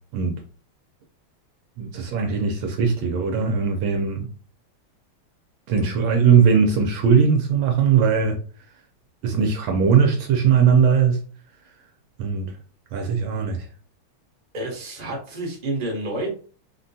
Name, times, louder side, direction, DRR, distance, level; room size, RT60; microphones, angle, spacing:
voice 1, 1.8-4.3 5.7-8.4 9.2-11.2 12.2-12.5 12.9-13.7, right 6 dB, 75° right, 1.2 m, -19 dB
voice 2, 14.5-16.3, right 2 dB, 35° right, 0.7 m, -29 dB
3.7 x 2.2 x 2.6 m
omnidirectional pair, 2.4 m